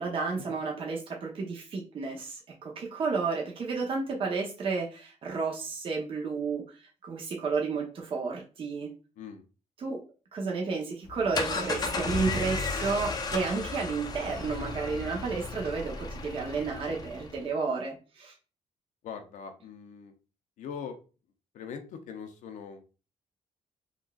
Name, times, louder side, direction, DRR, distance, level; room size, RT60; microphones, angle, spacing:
voice 1, 0.0-8.9 9.8-10.0 10.3-18.3, right 4 dB, 45° right, -1 dB, 0.7 m, -32 dB
sound 1, 11.0-17.4, left 3 dB, 30° left, 0.5 m, -34 dB
voice 2, 19.0-20.1 20.6-21.0 21.5-22.8, left 7 dB, 80° left, 6 dB, 0.5 m, -41 dB
3.7 x 2.3 x 2.3 m, 0.33 s
cardioid pair, 115°, 13 cm